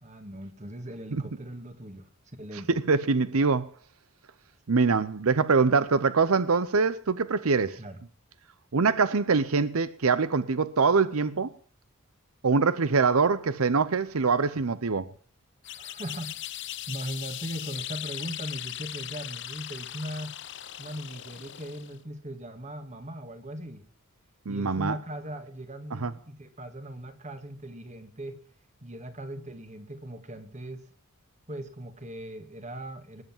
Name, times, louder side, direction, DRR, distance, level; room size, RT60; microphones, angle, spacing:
voice 1, 0.0-2.1 2.4-2.7 7.8-8.0 15.8-20.4 20.8-23.8 24.5-28.4 28.8-30.9 31.5-33.2, right 1 dB, 35° right, 1.9 m, -39 dB
voice 2, 2.7-3.7 4.7-7.8 8.7-11.5 12.4-15.1 24.5-25.0 25.9-26.1, right 4 dB, 75° right, 0.7 m, -24 dB
sound 1, 15.6-22.0, left 12 dB, 55° left, 0.7 m, -39 dB
19.5 x 8.0 x 7.3 m
head